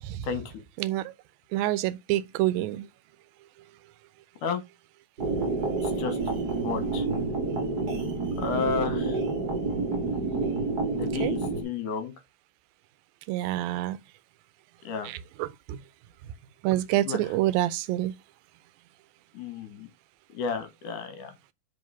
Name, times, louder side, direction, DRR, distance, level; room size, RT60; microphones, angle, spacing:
voice 1, 0.2-0.5 4.4-4.6 5.8-6.2 6.6-7.1 8.4-9.2 11.0-12.1 14.8-15.1 17.0-17.4 19.3-19.9 20.3-21.3, left 5 dB, 65° left, 2.7 m, -32 dB
voice 2, 1.5-2.9 11.2-11.3 13.3-14.0 15.4-15.8 16.6-18.1, right 15 dB, 80° right, 2.3 m, -27 dB
sound 1, 5.2-11.6, right 3 dB, 35° right, 1.9 m, -28 dB
5.3 x 4.7 x 5.6 m
omnidirectional pair, 4.2 m